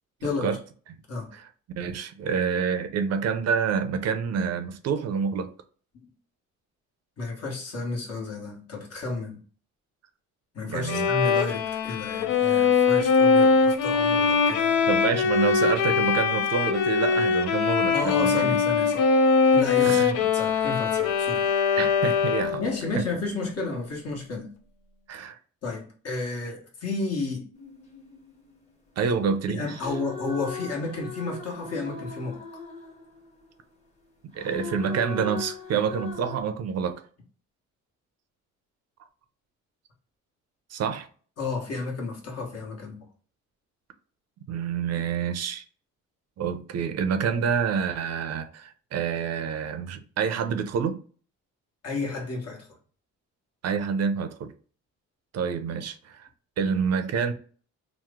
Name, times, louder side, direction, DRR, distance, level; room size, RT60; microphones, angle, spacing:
voice 1, 0.2-0.6 1.1-1.3 5.9-6.0 7.2-9.4 10.5-14.8 17.9-19.1 19.5-21.8 22.6-24.5 25.6-27.5 29.0-29.1 29.5-32.4 41.4-43.0 51.8-52.7, left 3 dB, 55° left, 1.2 m, -32 dB
voice 2, 1.8-5.5 10.7-11.1 14.9-18.6 19.8-20.1 21.8-22.6 23.0-23.1 25.1-25.4 29.0-29.7 34.3-37.0 40.7-41.1 44.5-45.6 46.4-51.0 53.6-54.5 55.3-56.3 56.6-57.3, right 6 dB, 60° right, 0.5 m, -27 dB
Bowed string instrument, 10.9-22.7, left 5 dB, 85° left, 0.5 m, -22 dB
sound 1, 27.5-29.1 29.6-33.5 34.3-36.4, left 4 dB, 20° left, 1.0 m, -39 dB
2.9 x 2.0 x 3.4 m
cardioid pair, 90°, 30 cm